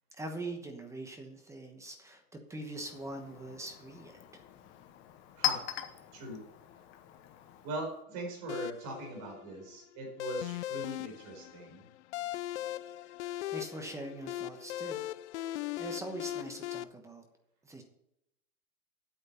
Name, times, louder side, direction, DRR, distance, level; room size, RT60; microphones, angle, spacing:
voice 1, 0.2-4.4 13.5-15.0 15.8-17.2 17.6-17.8, right 2 dB, 5° right, 5 dB, 1.0 m, -42 dB
Chink clink, 2.5-8.0, left 12 dB, 25° left, 1.0 m, -40 dB
voice 2, 5.4-6.4 7.6-11.9, right 2 dB, 35° right, 1 dB, 4.5 m, -41 dB
sound 1, 8.5-16.8, left 14 dB, 55° left, 0.5 m, -39 dB
8.7 x 8.0 x 5.6 m, 0.81 s
hypercardioid pair, 140°, 43 cm